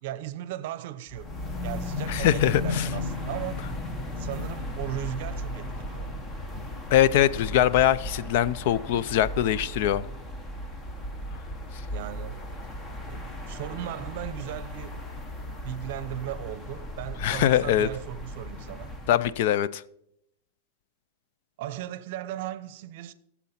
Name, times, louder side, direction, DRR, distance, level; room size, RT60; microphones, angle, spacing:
voice 1, 0.0-3.6 4.2-6.1 11.9-12.4 13.1-15.1 15.6-19.0 21.6-23.1, right 12 dB, 55° right, 0.7 m, -37 dB
sound 1, 1.1-19.4, left 2 dB, 15° left, 1.0 m, -35 dB
voice 2, 2.1-2.9 6.9-10.0 17.2-17.9 19.1-19.8, left 11 dB, 55° left, 0.4 m, -22 dB
15.5 x 7.2 x 4.3 m
supercardioid pair, 155°, 0 cm